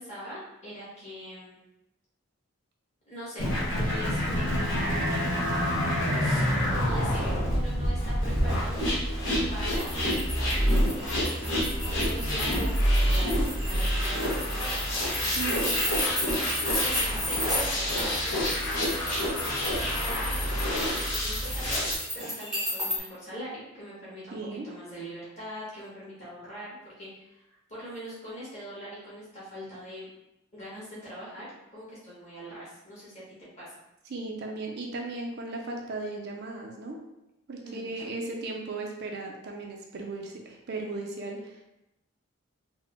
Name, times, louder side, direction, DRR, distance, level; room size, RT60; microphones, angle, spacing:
voice 1, 0.0-1.6 3.1-5.0 6.2-8.9 9.5-9.9 10.5-11.0 11.8-14.8 16.2-18.5 19.3-24.4 24.6-30.1 30.5-31.5 31.7-33.8 37.6-38.3, equal, 30° left, -9 dB, 1.5 m, -42 dB
sound 1, 3.4-21.9, equal, 65° left, 1.3 m, -27 dB
sound 2, 9.7-23.0, left 1 dB, ahead, 0.8 m, -34 dB
voice 2, 15.4-15.7 24.3-24.7 34.1-37.0 37.5-41.6, right 3 dB, 50° right, 1 dB, 0.4 m, -36 dB
3.6 x 2.1 x 3.4 m, 0.88 s
head